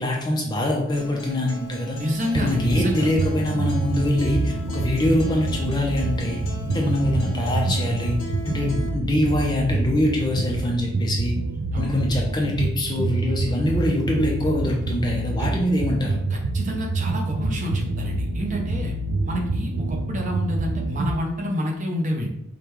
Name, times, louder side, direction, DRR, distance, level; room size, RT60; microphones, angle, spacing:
voice 1, 0.0-2.0 2.3-6.4 6.7-8.2 8.4-11.4 11.8-16.2, left 1 dB, 20° left, -1 dB, 0.5 m, -24 dB
Acoustic guitar, 0.9-8.9, left 2 dB, 65° left, 0.8 m, -38 dB
voice 2, 1.9-3.1 11.7-12.0 15.4-15.5 16.3-18.9 19.2-22.3, equal, 35° right, 1 dB, 0.6 m, -28 dB
sound 1, 2.3-21.1, right 2 dB, 65° right, 0.3 m, -27 dB
4.9 x 2.2 x 3.1 m, 0.76 s
head